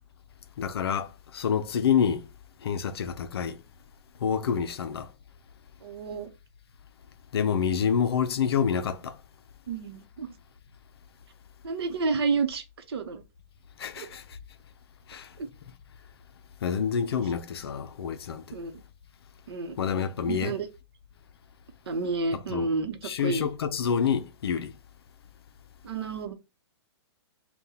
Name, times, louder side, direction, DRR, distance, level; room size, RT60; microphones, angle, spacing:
voice 1, 0.6-2.2 2.6-3.6 4.2-5.1 7.3-9.2 13.8-14.2 15.1-15.3 16.6-18.4 19.8-20.6 22.3-22.7 23.0-24.7, left 7 dB, 60° left, 0.5 m, -27 dB
voice 2, 5.8-6.3 9.7-10.3 11.6-13.2 14.0-14.1 15.4-15.5 18.5-18.7 19.5-19.8 20.2-20.7 21.9-23.5 25.8-26.3, right 4 dB, 65° right, 0.8 m, -30 dB
4.2 x 2.3 x 3.8 m
hypercardioid pair, 175°, 14 cm